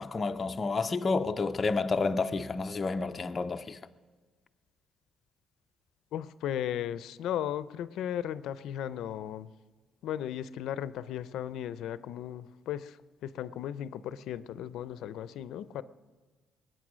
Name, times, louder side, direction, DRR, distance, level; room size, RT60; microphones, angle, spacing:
voice 1, 0.0-3.8, left 4 dB, 20° left, 0.4 m, -30 dB
voice 2, 6.1-9.5 10.0-13.0 13.2-15.8, left 10 dB, 75° left, 0.5 m, -36 dB
22.0 x 9.2 x 6.3 m
cardioid pair, 180°, 0 cm